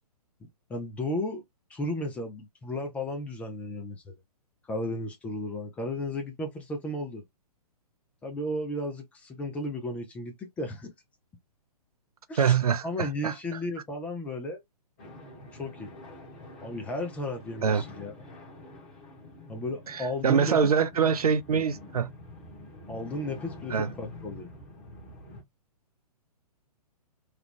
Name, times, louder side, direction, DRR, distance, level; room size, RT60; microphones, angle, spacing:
voice 1, 0.7-1.4 1.7-4.1 4.7-7.2 8.2-10.9 12.3-12.6 12.8-14.6 15.5-15.9 16.6-18.1 19.5-20.7 21.5-21.6 22.9-24.5, left 1 dB, 5° left, 0.4 m, -34 dB
voice 2, 12.4-13.3 17.6-17.8 19.9-22.1 23.7-23.9, right 6 dB, 65° right, 0.5 m, -24 dB
sound 1, 15.0-25.4, left 1 dB, 30° left, 1.3 m, -47 dB
3.2 x 2.3 x 3.2 m
figure-of-eight pair, 120°, 20 cm